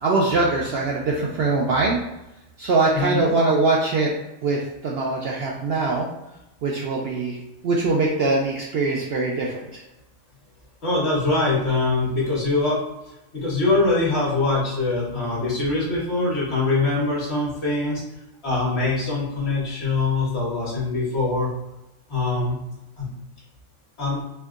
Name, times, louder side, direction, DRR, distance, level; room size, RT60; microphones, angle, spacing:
voice 1, 0.0-2.0 2.6-4.1 4.4-6.1 6.6-9.8, right 3 dB, 65° right, -2 dB, 0.6 m, -22 dB
voice 2, 2.9-3.3 10.8-12.8 13.3-18.0 18.4-21.5 22.1-22.6 23.0-23.1 24.0-24.2, left 3 dB, 55° left, -6 dB, 1.5 m, -23 dB
4.4 x 2.7 x 2.4 m, 0.93 s
omnidirectional pair, 1.4 m